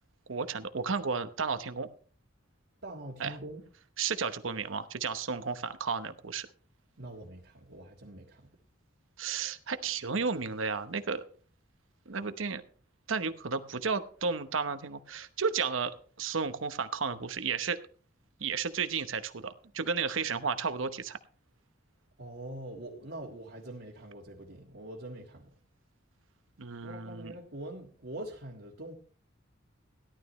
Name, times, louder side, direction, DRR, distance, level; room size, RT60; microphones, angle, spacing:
voice 1, 0.3-1.9 3.2-3.4 4.0-6.5 9.2-11.2 12.1-12.6 13.1-17.8 18.4-21.2 26.6-27.3, right 5 dB, 85° right, 0.9 m, -33 dB
voice 2, 2.8-3.6 7.0-8.5 22.2-25.5 26.8-28.9, right 1 dB, 65° right, 1.8 m, -44 dB
17.0 x 12.0 x 3.1 m
head